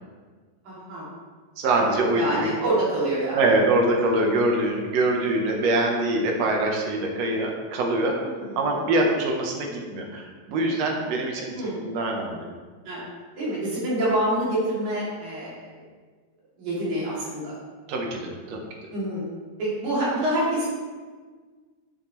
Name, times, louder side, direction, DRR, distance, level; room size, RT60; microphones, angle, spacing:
voice 1, 0.6-1.1 2.1-3.4 8.2-8.8 11.6-11.8 12.9-13.0 13.4-15.6 16.6-17.5 18.9-19.3 19.6-20.7, right 1 dB, 90° right, -8 dB, 4.3 m, -26 dB
voice 2, 1.6-2.5 3.3-8.2 8.6-12.5 17.9-18.6, right 2 dB, 65° right, 1 dB, 2.2 m, -24 dB
10.5 x 6.4 x 3.2 m, 1.5 s
omnidirectional pair, 3.3 m